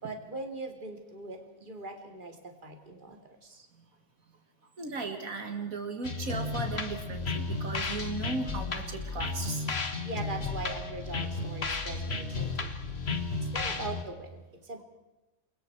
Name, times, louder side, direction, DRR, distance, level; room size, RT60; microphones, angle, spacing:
voice 1, 0.0-3.7 10.0-12.7 13.4-14.8, right 2 dB, 35° right, 5 dB, 2.5 m, -41 dB
voice 2, 4.8-9.6 13.3-13.4, right 3 dB, 75° right, 6 dB, 2.4 m, -36 dB
sound 1, 6.0-14.0, left 3 dB, 45° left, 1.8 m, -33 dB
28.5 x 23.0 x 4.6 m, 1.1 s
omnidirectional pair, 1.5 m